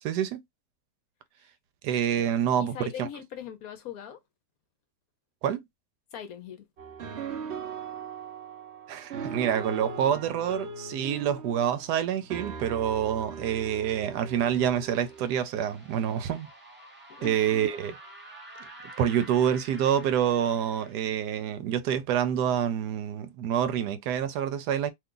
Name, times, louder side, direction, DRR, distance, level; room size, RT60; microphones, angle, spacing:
voice 1, 0.0-0.4 1.8-3.1 5.4-5.6 8.9-16.5 17.2-18.0 19.0-24.9, right 9 dB, 85° right, 1.2 m, -27 dB
voice 2, 2.6-4.2 6.1-6.7 17.1-17.6, left 9 dB, 70° left, 1.0 m, -41 dB
sound 1, 6.8-15.4, right 5 dB, 55° right, 0.8 m, -39 dB
sound 2, 13.2-20.9, right 1 dB, 15° right, 0.4 m, -49 dB
2.8 x 2.3 x 3.7 m
omnidirectional pair, 1.7 m